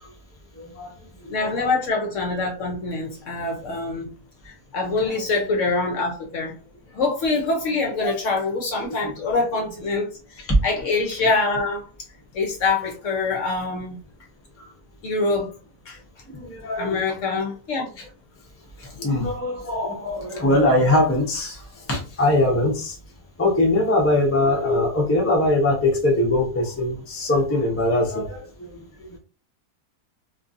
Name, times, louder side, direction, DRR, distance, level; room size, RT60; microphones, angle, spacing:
voice 1, 0.6-0.9 1.2-1.6 8.0-8.2 14.6-14.7 16.3-17.0 18.8-21.6 21.9-23.0 23.4-29.2, left 2 dB, 20° left, 0.3 m, -22 dB
voice 2, 1.3-4.1 4.7-6.6 6.9-10.1 10.6-11.8 12.3-14.0 15.0-15.5 15.9-16.0 16.8-17.9, left 3 dB, 65° left, 0.8 m, -24 dB
2.9 x 2.6 x 2.5 m
omnidirectional pair, 1.7 m